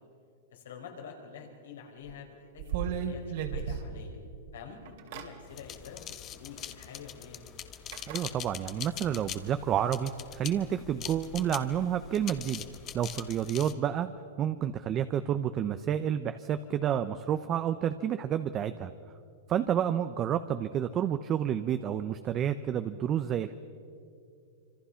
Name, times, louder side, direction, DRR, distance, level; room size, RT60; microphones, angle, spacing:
voice 1, 0.5-4.2 4.5-7.4 13.4-13.6 19.6-19.7, left 6 dB, 80° left, 1 dB, 5.2 m, -47 dB
sound 1, 2.1-2.2 2.6-4.4 4.8-5.3 6.6-6.7 7.9-8.2, right 8 dB, 60° right, 2.9 m, -34 dB
sound 2, 5.5-13.7, left 10 dB, 30° left, 1.2 m, -43 dB
voice 2, 8.1-12.6 12.9-14.1 14.4-18.9 19.5-23.5, right 9 dB, 25° right, 10 dB, 0.7 m, -30 dB
26.5 x 26.0 x 5.8 m, 2.5 s
hypercardioid pair, 145°, 0 cm